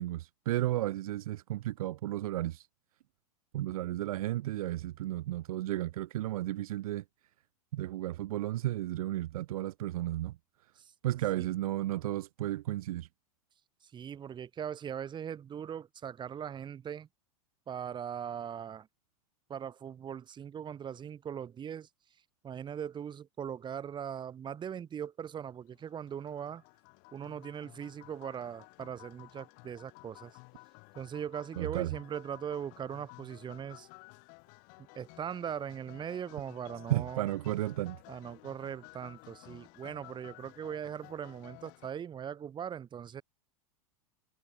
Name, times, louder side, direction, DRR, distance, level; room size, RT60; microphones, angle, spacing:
voice 1, 0.0-2.7 3.5-7.0 7.7-10.3 11.0-13.1 31.6-32.0 36.9-38.0, right 14 dB, 80° right, 0.6 m, -33 dB
voice 2, 13.8-17.1 17.7-18.9 19.5-21.9 22.4-26.6 27.1-30.3 30.9-33.9 34.8-37.3 38.1-43.2, right 8 dB, 25° right, 3.3 m, -40 dB
sound 1, 25.7-41.9, left 35 dB, 55° left, 5.3 m, -55 dB
hypercardioid pair, 120°, 18 cm